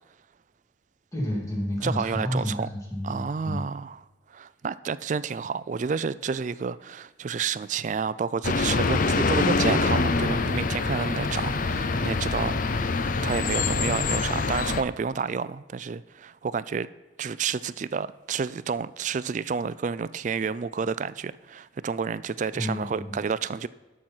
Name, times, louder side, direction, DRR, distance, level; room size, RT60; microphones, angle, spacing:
voice 1, 1.1-3.6 22.5-23.2, left 1 dB, 15° left, 2.8 m, -30 dB
voice 2, 1.8-2.7 3.0-4.0 4.3-12.9 13.2-16.9 17.2-23.7, right 5 dB, 40° right, 0.3 m, -30 dB
sound 1, 8.4-14.8, left 3 dB, 45° left, 0.5 m, -25 dB
13.0 x 6.2 x 4.5 m
head